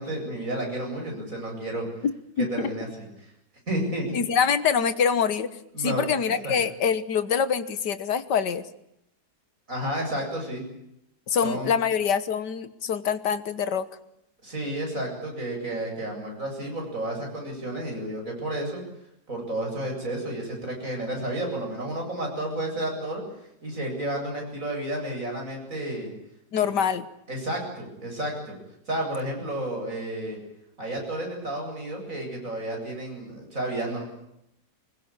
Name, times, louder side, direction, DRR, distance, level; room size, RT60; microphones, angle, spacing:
voice 1, 0.0-1.9 2.4-3.1 3.7-4.1 5.7-6.1 6.4-6.5 9.7-10.6 11.4-11.7 14.4-18.8 19.3-23.2 23.6-26.1 26.6-26.7 27.3-28.6 28.9-30.4 30.8-34.0, right 1 dB, 45° right, 1 dB, 8.6 m, -31 dB
voice 2, 2.4-2.7 4.1-5.5 5.8-8.6 11.3-13.9 26.5-27.1, left 7 dB, 75° left, 13 dB, 1.9 m, -25 dB
24.5 x 21.0 x 8.8 m, 0.81 s
omnidirectional pair, 1.9 m